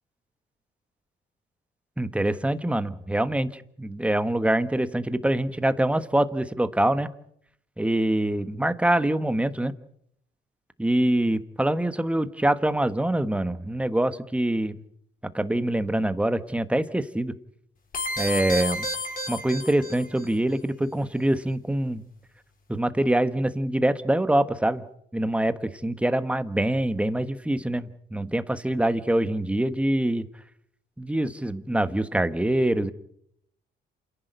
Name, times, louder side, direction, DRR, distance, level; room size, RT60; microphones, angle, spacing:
voice 1, 2.0-7.1 7.8-9.7 10.8-14.7 15.3-17.4 18.2-18.8 19.3-22.0 22.7-24.8 25.1-30.3 31.0-32.9, right 1 dB, 5° right, 12 dB, 1.3 m, -25 dB
sound 1, 17.9-20.3, left 1 dB, 45° left, 4.6 m, -31 dB
28.0 x 11.0 x 9.3 m, 0.72 s
cardioid pair, 90°, 20 cm